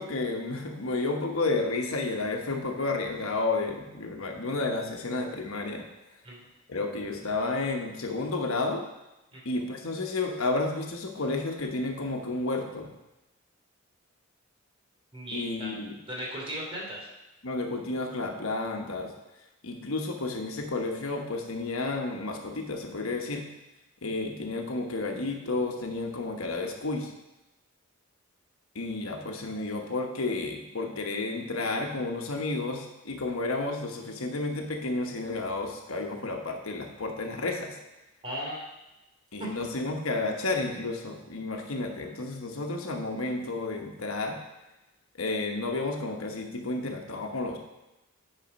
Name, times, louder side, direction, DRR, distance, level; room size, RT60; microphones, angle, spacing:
voice 1, 0.0-5.8 6.7-8.8 9.4-12.9 15.3-15.9 17.4-19.1 19.6-23.5 24.0-27.1 28.7-37.8 39.3-44.4 45.2-47.6, left 3 dB, 75° left, 3 dB, 1.1 m, -31 dB
voice 2, 15.1-15.7 16.1-17.1 38.2-38.6 39.4-39.6, equal, 25° right, -4 dB, 2.7 m, -36 dB
8.9 x 5.0 x 5.2 m, 0.97 s
head